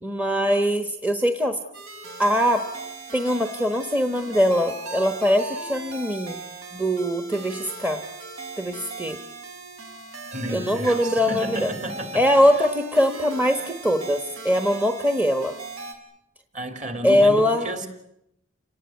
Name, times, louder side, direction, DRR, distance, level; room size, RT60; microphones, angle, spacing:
voice 1, 0.0-1.6 2.2-2.7 3.1-6.4 6.7-8.0 8.6-9.2 10.5-11.7 12.1-15.5 17.0-17.7, equal, 10° right, 6 dB, 1.1 m, -22 dB
sound 1, 1.7-15.9, right 3 dB, 70° right, 5.4 m, -38 dB
voice 2, 10.3-12.2 12.6-12.7 16.5-17.9, right 1 dB, 35° right, 7 dB, 3.4 m, -32 dB
30.0 x 18.5 x 9.4 m, 0.81 s
head